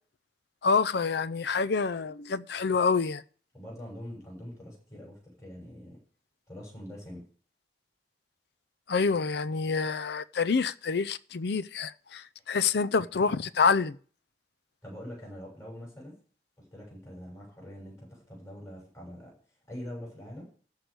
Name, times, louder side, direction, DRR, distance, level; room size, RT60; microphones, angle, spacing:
voice 1, 0.6-3.2 8.9-14.0, left 5 dB, 65° left, 0.5 m, -27 dB
voice 2, 3.5-6.0 6.5-7.2 14.8-16.2 16.6-19.3 19.7-20.5, equal, 20° left, 6.8 m, -44 dB
14.0 x 4.9 x 8.2 m
head